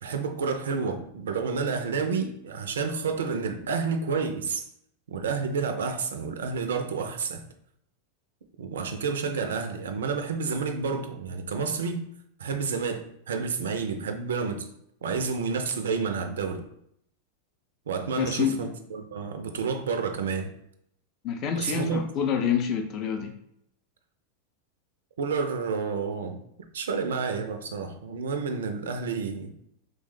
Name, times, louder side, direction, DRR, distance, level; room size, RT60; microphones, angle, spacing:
voice 1, 0.0-4.7 5.1-7.4 8.6-12.0 12.4-14.7 15.0-16.6 17.9-20.5 21.6-22.0 25.2-26.4 26.7-29.5, right 5 dB, 65° right, 7 dB, 0.3 m, -30 dB
voice 2, 18.2-18.7 21.2-23.3, left 7 dB, 35° left, 4 dB, 0.4 m, -27 dB
3.0 x 2.1 x 3.2 m, 0.72 s
figure-of-eight pair, 90°, 0 cm